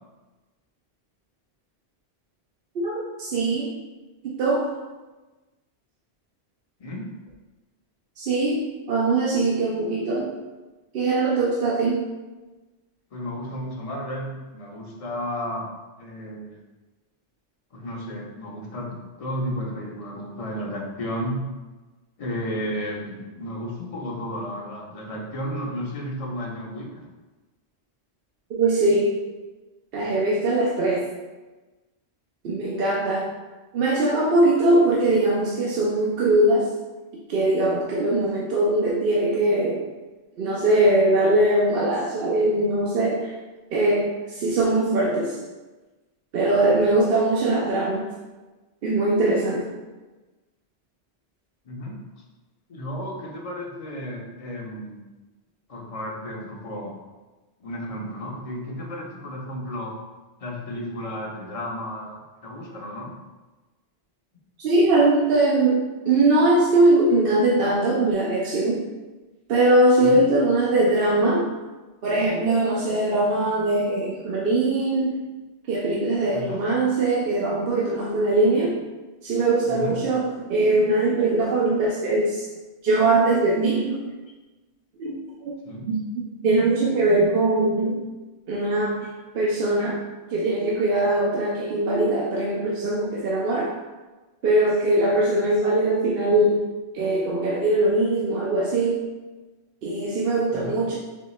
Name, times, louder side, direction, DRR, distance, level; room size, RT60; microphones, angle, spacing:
voice 1, 2.7-3.7 4.2-4.7 8.2-10.3 10.9-12.1 28.5-29.2 29.9-31.1 32.4-33.3 33.7-36.7 37.3-39.9 40.4-43.3 43.7-45.4 46.3-48.1 48.8-49.7 64.6-68.8 69.5-71.5 72.0-75.1 75.7-78.8 79.2-82.5 82.8-84.0 85.0-85.2 85.9-86.0 86.4-88.0 88.5-90.0 90.3-93.7 94.4-96.7 96.9-99.0 99.8-101.0, right 2 dB, 65° right, -4 dB, 0.8 m, -21 dB
voice 2, 13.1-15.7 16.0-16.6 17.7-21.5 22.2-27.0 51.6-52.0 52.7-55.0 55.7-57.0 57.6-59.9 60.4-63.2 70.0-70.2 76.3-76.7 79.7-80.0 85.6-85.9 100.5-100.8, equal, 40° left, -1 dB, 0.7 m, -33 dB
4.2 x 3.1 x 3.1 m, 1.2 s
omnidirectional pair, 1.1 m